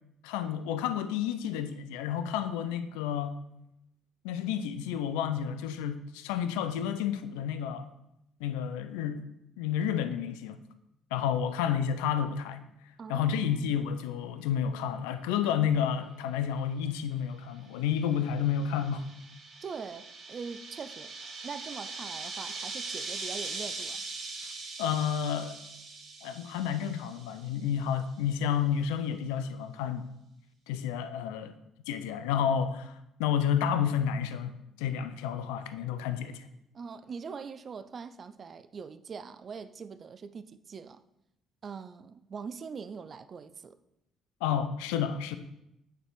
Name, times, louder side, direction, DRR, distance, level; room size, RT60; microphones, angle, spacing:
voice 1, 0.2-3.4 4.2-7.9 8.4-9.2 9.6-10.6 11.1-12.6 13.1-19.1 24.8-25.6 26.2-30.0 30.7-31.6 31.9-36.5 44.4-45.4, left 8 dB, 90° left, 0.4 m, -30 dB
voice 2, 13.0-13.7 19.6-21.1 21.4-24.0 36.7-41.0 41.6-43.8, right 5 dB, 45° right, 0.4 m, -42 dB
sound 1, 17.8-27.6, right 3 dB, 65° right, 2.0 m, -41 dB
8.8 x 3.4 x 4.6 m
supercardioid pair, 65°, 0 cm